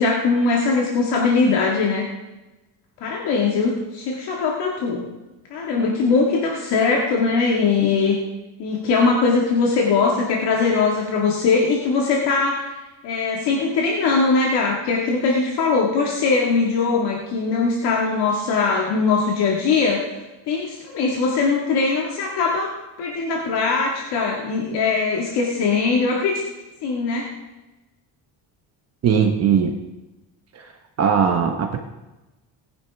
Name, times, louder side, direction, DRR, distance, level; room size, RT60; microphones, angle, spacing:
voice 1, 0.0-2.1 3.0-5.1 5.5-8.2 8.6-12.7 13.0-20.0 20.5-22.7 23.0-26.3 26.8-27.3, left 4 dB, 65° left, -2 dB, 2.0 m, -21 dB
voice 2, 29.0-29.7 30.5-30.7 31.0-31.8, right 7 dB, 35° right, 4 dB, 1.0 m, -19 dB
19.0 x 10.5 x 3.5 m, 1.1 s
cardioid pair, 175°, 43 cm